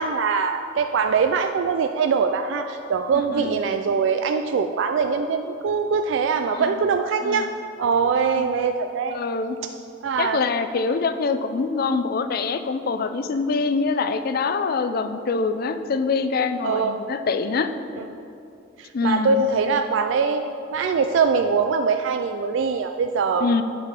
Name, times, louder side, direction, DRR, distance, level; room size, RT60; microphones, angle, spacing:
voice 1, 0.0-7.5 7.8-9.2 10.0-10.4 16.6-16.9 18.0-18.1 19.0-20.4 20.7-23.5, right 5 dB, 65° right, 6 dB, 0.3 m, -22 dB
voice 2, 3.1-3.6 6.5-6.8 7.2-7.5 8.2-8.5 9.1-9.6 10.2-17.7 18.9-19.4 23.4-23.6, left 4 dB, 50° left, 10 dB, 0.4 m, -25 dB
9.5 x 4.7 x 5.3 m, 2.7 s
head